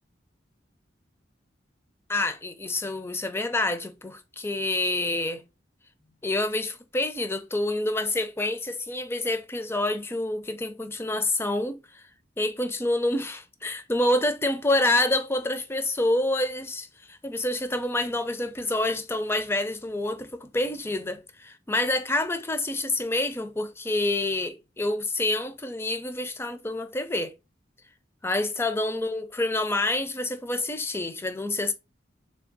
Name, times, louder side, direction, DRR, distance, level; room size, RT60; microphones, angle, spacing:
voice 1, 2.1-5.4 6.2-12.0 12.4-27.3 28.2-31.7, left 2 dB, 15° left, 0.4 m, -27 dB
3.4 x 3.3 x 3.9 m
head